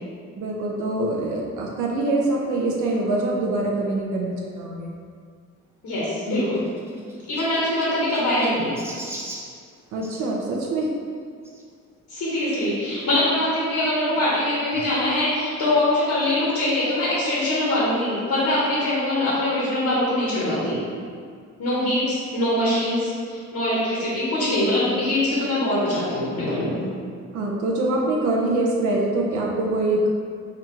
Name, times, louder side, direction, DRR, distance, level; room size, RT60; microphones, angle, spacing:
voice 1, 0.4-4.9 9.9-10.9 27.3-30.1, right 2 dB, 80° right, -2 dB, 0.6 m, -24 dB
voice 2, 5.8-6.6 7.3-8.8 12.1-20.8 21.6-26.8, left 1 dB, 75° left, -8 dB, 1.1 m, -23 dB
Chirp tweet, 6.0-10.3 11.4-11.6 12.3-12.4 12.6-12.7 14.0-14.1, right 1 dB, 10° right, 0.5 m, -40 dB
4.7 x 2.4 x 3.0 m, 2.1 s
cardioid pair, 90°, 30 cm